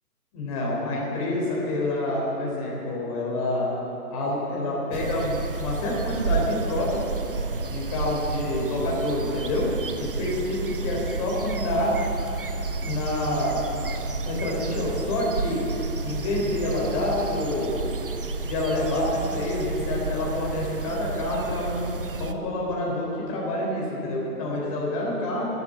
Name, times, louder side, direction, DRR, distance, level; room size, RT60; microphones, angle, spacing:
voice 1, 0.3-3.7 4.1-7.0 7.7-9.7 10.0-11.9 12.8-13.6 14.2-15.6 16.0-17.9 18.4-21.8 22.2-25.5, left 1 dB, 25° left, -3 dB, 3.5 m, -27 dB
sound 1, 4.9-22.3, right 4 dB, 35° right, 0.6 m, -31 dB
11.5 x 10.5 x 8.4 m, 2.9 s
hypercardioid pair, 160°, 46 cm